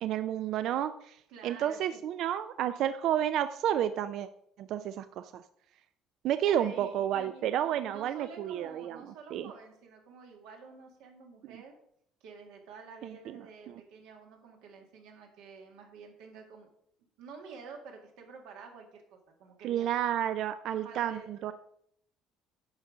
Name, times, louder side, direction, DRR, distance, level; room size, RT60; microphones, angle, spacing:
voice 1, 0.0-1.2 1.4-4.3 4.6-5.4 6.2-9.0 9.3-9.5 11.4-11.5 13.0-13.4 19.6-21.5, right 10 dB, 65° right, 12 dB, 0.4 m, -31 dB
voice 2, 1.3-2.0 6.4-11.7 12.2-16.7 17.2-19.9 20.7-21.3, right 5 dB, 85° right, 2 dB, 2.0 m, -50 dB
9.6 x 5.5 x 4.9 m, 0.70 s
cardioid pair, 135°, 0 cm